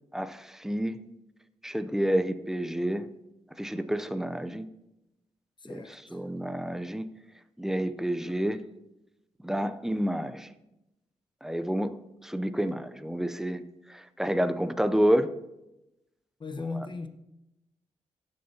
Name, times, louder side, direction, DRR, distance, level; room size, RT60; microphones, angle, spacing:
voice 1, 0.1-1.0 1.6-3.1 3.6-4.7 5.6-7.1 7.6-8.6 9.4-10.5 11.4-11.9 12.2-13.6 13.9-15.3 16.6-16.9, equal, 5° right, 0.6 m, -29 dB
voice 2, 5.6-6.2 16.4-17.1, left 3 dB, 40° left, 1.0 m, -37 dB
16.0 x 6.6 x 2.9 m
cardioid pair, 70°, 12 cm